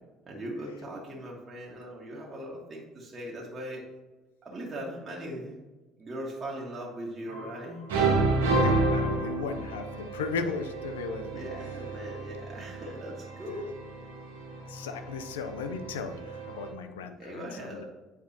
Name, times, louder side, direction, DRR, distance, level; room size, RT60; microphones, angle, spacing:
voice 1, 0.3-3.8 4.4-5.5 6.0-7.8 8.5-8.6 11.3-13.8 17.2-17.9, equal, 35° right, -4 dB, 1.5 m, -39 dB
sound 1, 7.3-7.6 7.9-16.7, right 3 dB, 90° right, 1.4 m, -31 dB
voice 2, 8.5-11.8 13.5-13.6 14.7-17.9, left 5 dB, 85° left, 8 dB, 0.5 m, -36 dB
8.3 x 4.4 x 2.8 m, 1.2 s
hypercardioid pair, 65°, 0 cm